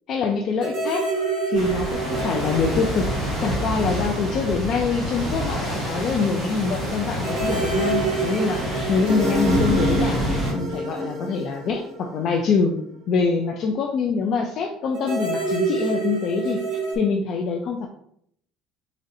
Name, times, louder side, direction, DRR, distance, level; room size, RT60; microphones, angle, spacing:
voice 1, 0.1-1.0 1.5-10.2 10.5-12.8 13.1-16.6 17.0-17.9, left 5 dB, 40° left, 3 dB, 0.3 m, -24 dB
sound 1, 0.6-4.4 4.6-4.7 7.2-12.6 14.9-17.0, right 3 dB, 60° right, 1.2 m, -27 dB
sound 2, 1.5-10.5, equal, 15° right, 1.5 m, -27 dB
3.8 x 3.1 x 2.6 m, 0.69 s
cardioid pair, 175°, 0 cm